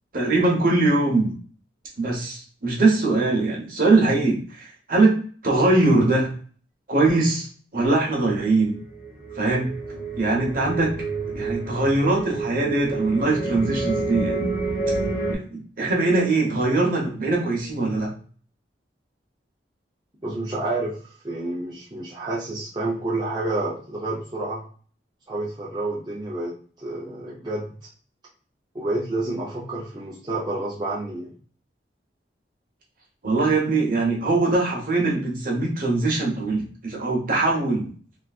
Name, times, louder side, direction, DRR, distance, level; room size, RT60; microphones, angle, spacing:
voice 1, 0.1-1.4 2.0-6.3 6.9-7.5 7.7-8.8 9.3-9.7 10.2-10.9 11.3-14.5 15.3-18.1 33.2-37.9, right 2 dB, 50° right, -1 dB, 1.1 m, -22 dB
sound 1, 8.6-15.3, right 3 dB, 55° left, 1.7 m, -29 dB
voice 2, 20.2-24.6 25.3-27.7 28.7-31.3, right 2 dB, 25° right, -6 dB, 0.7 m, -29 dB
3.4 x 3.0 x 2.4 m, 0.44 s
head